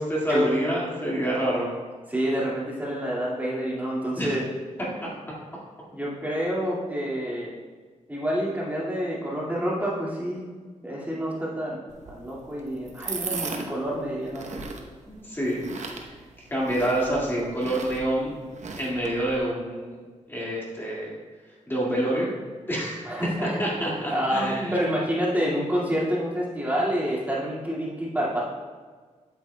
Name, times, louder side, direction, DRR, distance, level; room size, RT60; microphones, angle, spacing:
voice 1, 0.0-1.7 4.2-4.3 5.0-5.1 13.0-13.2 15.1-15.6 15.9-16.1 16.5-18.3 18.8-20.0 20.3-21.1 21.7-22.3 22.7-23.1 23.4-24.9, right 1 dB, 15° left, -5 dB, 2.0 m, -27 dB
voice 2, 2.1-4.4 5.9-7.5 8.1-10.4 10.8-11.8 12.1-14.6 23.0-23.6 24.1-28.4, equal, 15° right, -6 dB, 2.1 m, -28 dB
sound 1, 11.9-19.4, right 4 dB, 65° right, 0.9 m, -38 dB
9.6 x 8.8 x 2.2 m, 1.5 s
wide cardioid pair, 105°, 13 cm